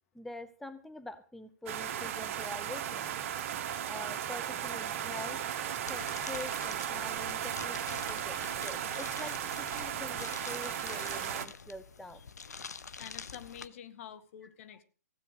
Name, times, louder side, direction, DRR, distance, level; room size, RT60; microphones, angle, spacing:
voice 1, 0.1-3.1 3.9-5.4 5.9-12.2, left 1 dB, ahead, 11 dB, 0.8 m, -45 dB
sound 1, 1.7-11.5, right 10 dB, 50° right, 1.5 m, -36 dB
sound 2, 5.9-13.7, left 5 dB, 85° left, 0.9 m, -46 dB
voice 2, 12.1-12.7 13.0-14.8, left 10 dB, 55° left, 13 dB, 1.6 m, -49 dB
16.0 x 8.3 x 6.5 m, 0.39 s
hypercardioid pair, 125°, 9 cm